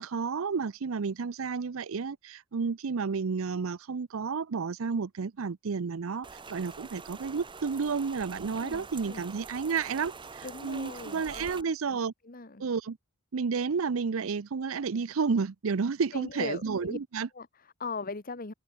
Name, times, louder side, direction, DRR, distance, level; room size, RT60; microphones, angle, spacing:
voice 1, 0.0-12.1 12.6-13.0 13.3-17.3, right 5 dB, 75° right, 0.6 m, -31 dB
Rain, 6.2-11.6, right 4 dB, 25° right, 1.0 m, -45 dB
voice 2, 8.6-9.2 10.4-12.0 12.2-12.6 16.1-17.0 17.3-18.5, left 3 dB, 45° left, 1.3 m, -40 dB
open air
head